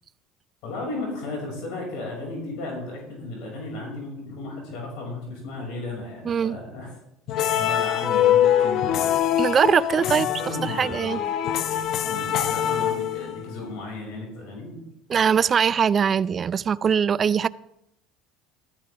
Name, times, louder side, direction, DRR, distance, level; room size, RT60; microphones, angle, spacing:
voice 1, 0.6-7.0 7.6-9.1 9.9-11.2 12.0-14.8, left 2 dB, 70° left, 6.1 m, -35 dB
voice 2, 6.2-6.6 9.4-10.3 10.6-11.2 15.1-17.5, right 7 dB, 35° right, 0.4 m, -21 dB
sound 1, 7.3-13.6, left 10 dB, 55° left, 0.9 m, -24 dB
14.5 x 13.5 x 3.6 m
supercardioid pair, 100°, 0 cm